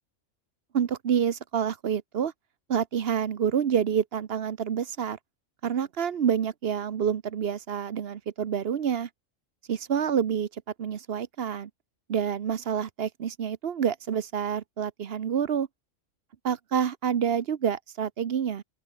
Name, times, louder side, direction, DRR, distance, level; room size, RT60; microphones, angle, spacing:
voice 1, 0.7-2.3 2.7-5.2 5.6-9.1 9.7-10.5 10.8-11.7 12.1-15.7 16.4-18.6, right 8 dB, 55° right, 1.0 m, -28 dB
open air
omnidirectional pair, 1.3 m